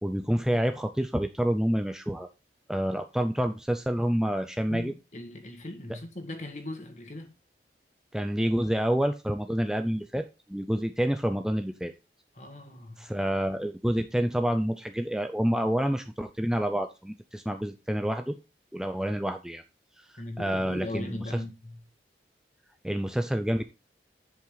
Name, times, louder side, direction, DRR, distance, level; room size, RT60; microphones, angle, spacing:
voice 1, 0.0-2.3 2.7-4.9 8.1-11.9 13.0-18.4 18.7-19.6 20.0-21.1 22.8-23.6, equal, 5° right, 0.5 m, -28 dB
voice 2, 4.7-7.3 12.3-13.1 20.2-21.8, left 1 dB, 40° left, 1.9 m, -39 dB
10.5 x 5.5 x 3.9 m
head